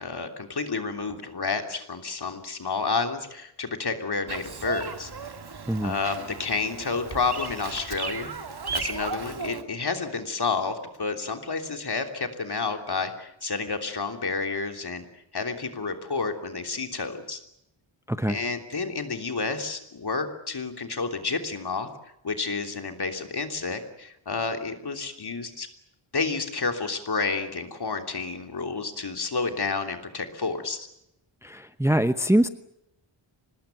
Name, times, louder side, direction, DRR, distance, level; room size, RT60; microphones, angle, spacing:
voice 1, 0.0-5.1 5.8-8.3 8.7-17.4 18.3-21.9 22.2-25.7 26.1-30.9, left 4 dB, 50° left, 6 dB, 3.3 m, -30 dB
Bird vocalization bird call bird song, 4.3-9.6, right 5 dB, 50° right, 2.3 m, -35 dB
voice 2, 31.4-32.5, right 1 dB, 5° right, 11 dB, 0.9 m, -23 dB
25.0 x 20.5 x 9.2 m, 0.81 s
wide cardioid pair, 90°, 48 cm